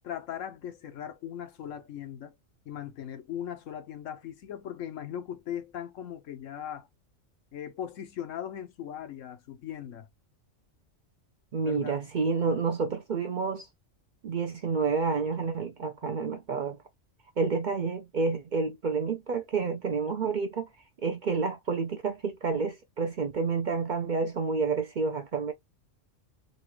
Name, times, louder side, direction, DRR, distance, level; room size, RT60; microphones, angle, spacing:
voice 1, 0.0-2.3 2.7-6.9 7.5-10.1 11.6-12.0, left 10 dB, 85° left, 1.2 m, -39 dB
voice 2, 11.5-13.7 14.2-16.8 17.4-20.7 21.0-25.5, right 4 dB, 50° right, 0.6 m, -29 dB
4.1 x 2.3 x 2.9 m
omnidirectional pair, 1.3 m